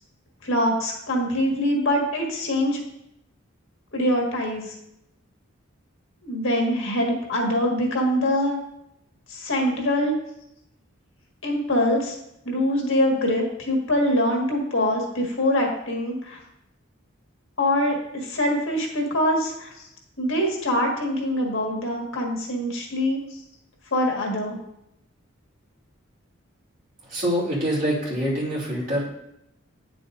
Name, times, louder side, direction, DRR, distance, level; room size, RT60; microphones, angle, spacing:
voice 1, 0.4-2.8 3.9-4.7 6.2-8.6 9.3-10.1 11.4-12.2 12.4-16.4 17.6-19.9 20.2-23.4 23.9-24.6, left 1 dB, 70° left, 1 dB, 1.6 m, -24 dB
voice 2, 27.1-29.1, equal, 45° right, -5 dB, 2.7 m, -25 dB
9.1 x 6.9 x 2.5 m, 0.81 s
head